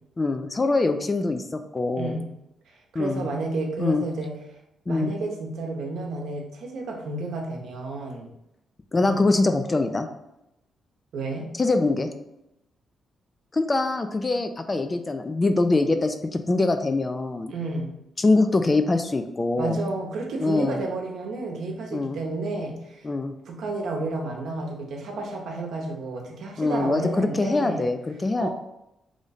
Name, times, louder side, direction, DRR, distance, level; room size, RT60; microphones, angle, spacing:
voice 1, 0.2-2.1 2.9-3.3 3.8-4.0 4.9-5.1 8.9-10.1 11.6-12.1 13.5-17.5 18.2-19.8 20.4-20.8 21.9-22.2 23.0-23.3 26.6-28.5, left 2 dB, 30° left, 7 dB, 0.4 m, -23 dB
voice 2, 2.0-2.3 2.7-4.4 4.9-8.3 9.0-9.2 11.1-11.5 17.5-17.9 19.6-23.1 23.5-27.8 28.4-28.5, right 2 dB, 75° right, 1 dB, 0.8 m, -31 dB
3.2 x 2.6 x 4.0 m, 0.86 s
cardioid pair, 75°, 0 cm